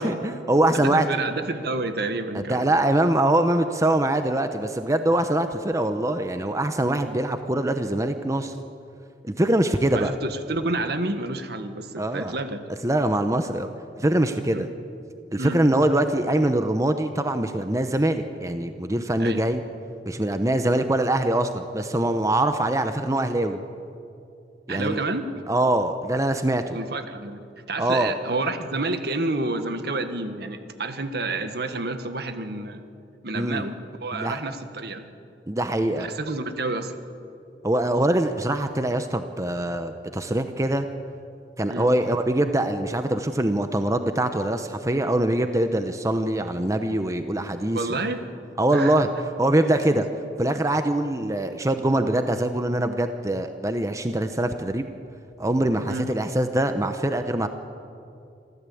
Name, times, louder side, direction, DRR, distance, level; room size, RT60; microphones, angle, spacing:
voice 1, 0.0-1.1 2.3-8.5 9.2-10.1 12.0-12.3 12.8-13.7 14.0-14.7 15.3-19.6 20.1-23.6 24.7-25.0 25.5-26.8 27.8-28.1 33.3-33.6 34.1-34.4 35.5-36.1 37.6-40.9 41.6-47.8 48.6-49.1 49.4-50.1 50.4-54.9 55.4-57.5, right 1 dB, 20° right, 8 dB, 0.9 m, -23 dB
voice 2, 0.7-2.7 9.9-12.6 14.5-14.6 15.4-15.6 19.2-19.5 24.7-25.3 26.6-32.8 33.2-35.1 36.0-36.9 41.7-41.9 47.7-48.2 48.7-49.1 49.9-50.0 55.9-56.1, right 2 dB, 65° right, 8 dB, 1.6 m, -29 dB
26.5 x 15.0 x 8.6 m, 2.6 s
head